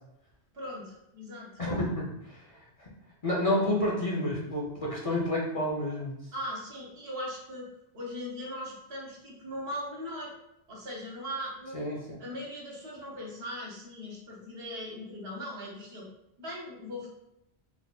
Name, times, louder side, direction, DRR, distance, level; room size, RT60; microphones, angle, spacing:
voice 1, 0.5-1.6 6.3-7.7 7.9-10.3 10.7-11.8 12.2-16.1 16.4-17.1, equal, 75° right, -3 dB, 1.2 m, -39 dB
voice 2, 1.6-2.9 3.2-6.2 11.7-12.2, left 1 dB, 40° left, -4 dB, 0.7 m, -30 dB
4.0 x 2.7 x 2.3 m, 0.83 s
omnidirectional pair, 1.1 m